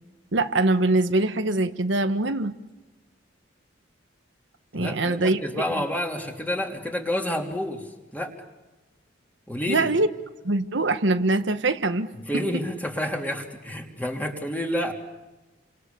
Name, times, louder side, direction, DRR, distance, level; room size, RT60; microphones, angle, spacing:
voice 1, 0.3-2.5 4.7-5.4 9.7-10.1 10.4-12.1, right 2 dB, 75° right, 8 dB, 1.4 m, -23 dB
voice 2, 4.7-8.3 9.5-9.9 12.2-14.9, left 1 dB, 10° left, 2 dB, 3.3 m, -29 dB
29.5 x 26.5 x 7.0 m, 1.1 s
head